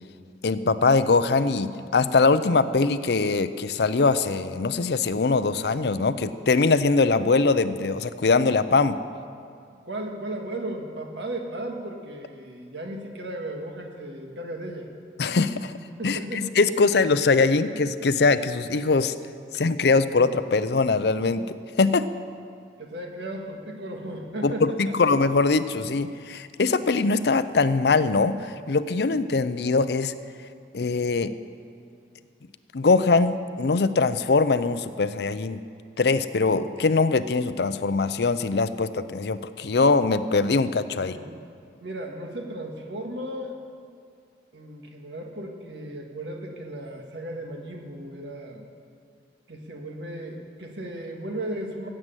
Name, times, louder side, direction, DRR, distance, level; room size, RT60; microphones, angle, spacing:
voice 1, 0.4-9.0 15.2-15.7 16.0-19.1 19.5-22.1 24.4-30.1 30.7-31.3 32.7-35.6 36.0-41.2, left 4 dB, 70° left, 13 dB, 0.6 m, -22 dB
voice 2, 9.8-14.9 16.0-16.5 22.8-24.9 40.9-41.4 41.8-43.6 44.5-48.7 49.5-51.9, right 1 dB, 80° right, 2 dB, 1.8 m, -35 dB
16.0 x 7.7 x 9.1 m, 2.3 s
head